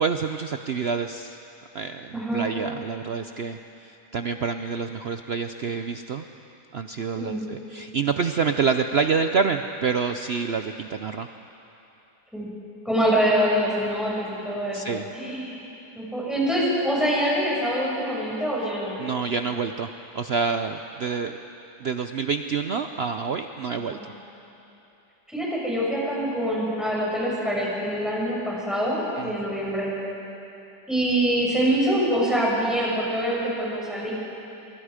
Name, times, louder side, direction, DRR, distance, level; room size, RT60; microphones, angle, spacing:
voice 1, 0.0-1.4 1.7-6.2 6.7-11.3 14.7-15.1 19.0-19.9 20.1-21.4 21.8-24.1 29.2-29.3, right 5 dB, 70° right, 7 dB, 0.6 m, -27 dB
voice 2, 2.1-2.4 7.2-7.5 12.3-12.5 12.8-15.6 15.9-19.0 23.9-24.1 25.3-29.9 30.9-34.1, equal, ahead, -6 dB, 6.6 m, -25 dB
24.5 x 24.5 x 5.0 m, 2.9 s
omnidirectional pair, 1.8 m